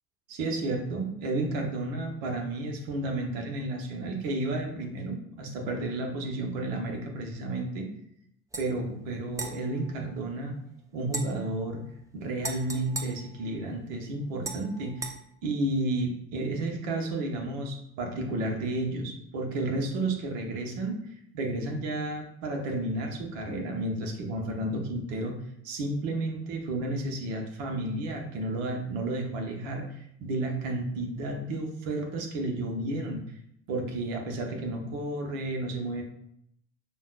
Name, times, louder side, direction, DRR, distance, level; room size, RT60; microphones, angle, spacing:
voice 1, 0.3-7.9 8.6-10.5 10.9-11.8 12.1-15.1 15.4-21.0 21.3-25.4 25.6-33.2 33.7-36.0, right 2 dB, 65° right, 1 dB, 0.9 m, -32 dB
sound 1, 8.5-8.7 9.3-10.6 11.1-13.9 14.4-15.2, right 3 dB, 10° right, 0.4 m, -40 dB
5.2 x 2.3 x 2.4 m, 0.72 s
figure-of-eight pair, 55°, 39 cm